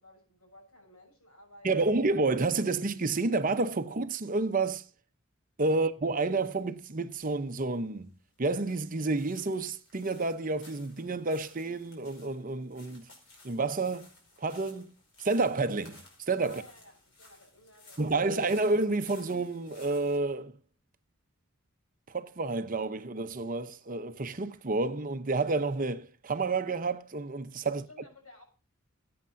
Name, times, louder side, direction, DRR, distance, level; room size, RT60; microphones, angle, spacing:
voice 1, 0.0-2.0 16.4-18.4 27.7-28.4, left 1 dB, 90° left, 6.5 m, -55 dB
voice 2, 1.6-4.8 5.6-8.1 8.4-13.1 13.4-14.1 14.4-14.9 15.2-16.6 18.0-20.6 22.1-27.9, right 3 dB, 40° right, 0.7 m, -30 dB
sound 1, 6.5-20.2, left 2 dB, 55° left, 5.2 m, -58 dB
20.5 x 8.6 x 2.6 m
head